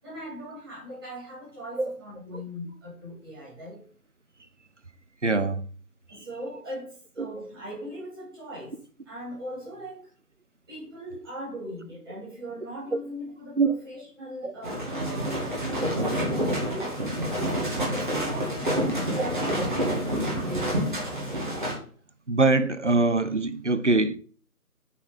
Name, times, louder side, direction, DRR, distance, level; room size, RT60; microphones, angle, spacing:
voice 1, 0.0-3.8 6.1-8.8 9.0-10.1 10.7-15.5 15.9-17.0 17.9-20.9, equal, 15° right, 3.0 m, -39 dB
voice 2, 5.2-5.6 13.6-13.7 14.4-14.5 22.3-24.2, right 3 dB, 50° right, 0.6 m, -23 dB
sound 1, 14.6-21.7, equal, 30° right, 2.5 m, -28 dB
8.5 x 4.1 x 5.2 m
figure-of-eight pair, 165°, 46 cm